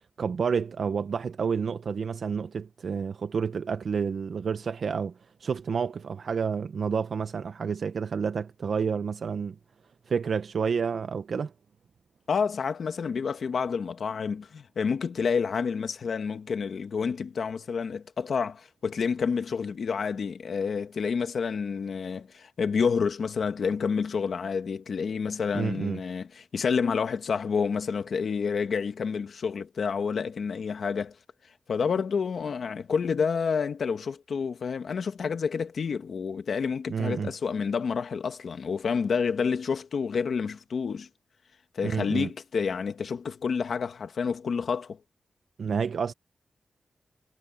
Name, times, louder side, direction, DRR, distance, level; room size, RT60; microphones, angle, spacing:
voice 1, 0.2-9.6 10.1-11.5 25.5-26.0 36.9-37.3 41.8-42.3 45.6-46.1, right 6 dB, 65° right, 0.6 m, -29 dB
voice 2, 12.3-31.1 31.7-41.1 41.7-45.0, left 6 dB, 65° left, 1.4 m, -29 dB
wide cardioid pair, 135°, 0 cm